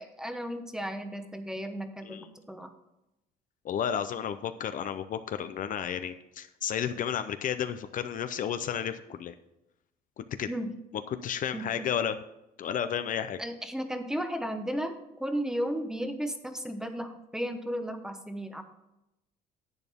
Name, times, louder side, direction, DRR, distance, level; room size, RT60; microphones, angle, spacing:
voice 1, 0.0-2.7 10.5-10.7 11.5-12.0 13.4-18.6, equal, 5° right, 8 dB, 1.0 m, -34 dB
voice 2, 3.6-9.3 10.2-10.5 11.1-12.2 12.6-13.4, left 9 dB, 50° left, 10 dB, 0.6 m, -32 dB
11.0 x 8.1 x 3.6 m, 0.90 s
cardioid pair, 110°, 17 cm